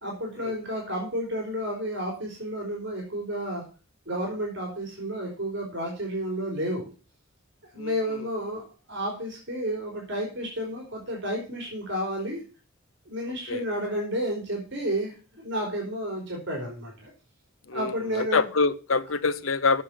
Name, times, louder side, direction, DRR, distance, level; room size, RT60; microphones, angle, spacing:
voice 1, 0.0-3.6 4.1-6.9 7.7-12.4 13.1-17.1 17.7-18.5, equal, 60° right, -1 dB, 3.8 m, -31 dB
voice 2, 17.7-19.8, left 4 dB, 75° left, 14 dB, 0.9 m, -26 dB
8.3 x 6.7 x 7.5 m, 0.35 s
head